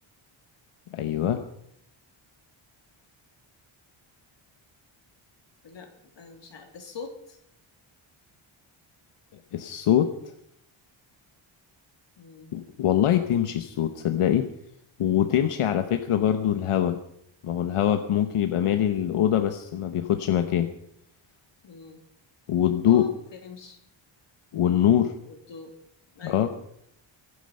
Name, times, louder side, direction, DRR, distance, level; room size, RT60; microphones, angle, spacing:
voice 1, 0.9-1.4 9.5-10.1 12.5-14.5 15.0-17.0 17.4-20.7 22.5-23.1 24.5-25.1 26.2-26.5, left 10 dB, 90° left, 7 dB, 1.2 m, -23 dB
voice 2, 5.6-7.4 12.2-12.5 21.6-22.0 22.9-23.8 25.2-25.8 26.1-26.5, left 5 dB, 60° left, 3 dB, 3.3 m, -44 dB
23.0 x 10.0 x 5.6 m, 0.74 s
wide cardioid pair, 135°, 50 cm